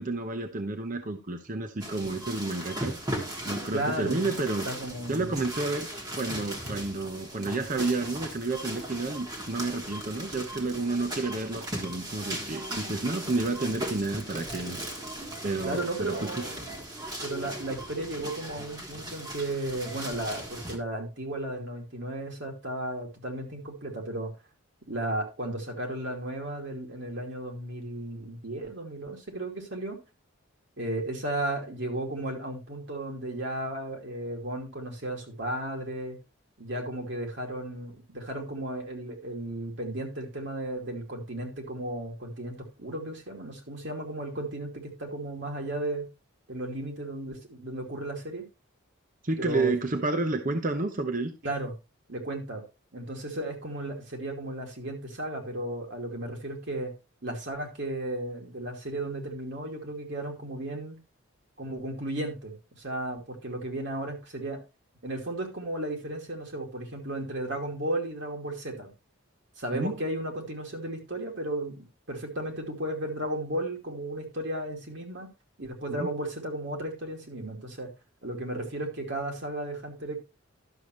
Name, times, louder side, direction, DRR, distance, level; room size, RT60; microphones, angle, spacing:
voice 1, 0.0-2.9 3.4-4.7 5.1-5.9 6.2-14.8 15.4-16.4 49.2-51.3 69.7-70.0 75.9-76.1, right 3 dB, 40° right, 6 dB, 0.8 m, -30 dB
sound 1, 1.8-20.8, right 1 dB, 20° right, 1.6 m, -38 dB
voice 2, 3.7-4.4 4.6-5.4 15.6-16.7 17.2-24.3 24.9-30.0 30.8-36.2 36.6-46.1 46.5-48.5 49.4-49.7 51.4-51.7 52.1-52.6 52.9-56.9 57.2-61.0 61.6-64.6 65.0-68.9 69.6-75.3 75.6-77.9 78.2-80.2, right 1 dB, 55° right, 1 dB, 2.5 m, -34 dB
11.5 x 7.0 x 3.1 m, 0.27 s
head